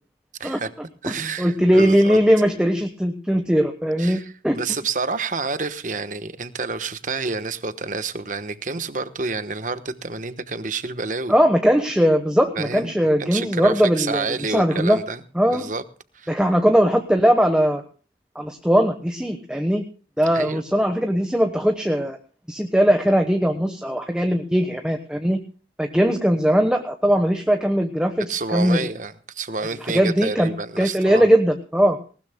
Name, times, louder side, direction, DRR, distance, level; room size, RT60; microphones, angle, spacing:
voice 1, 0.4-0.7 1.0-2.2 4.0-11.3 12.6-15.2 15.5-15.8 16.1-16.3 20.3-20.6 28.3-31.3, right 4 dB, 45° right, 11 dB, 1.1 m, -29 dB
voice 2, 1.1-4.6 11.3-15.0 15.3-15.7 16.3-17.8 18.3-19.8 20.2-22.2 22.5-25.4 25.8-28.8 29.8-30.5 30.8-32.0, equal, 5° right, 5 dB, 1.1 m, -19 dB
19.5 x 19.0 x 2.2 m, 0.37 s
head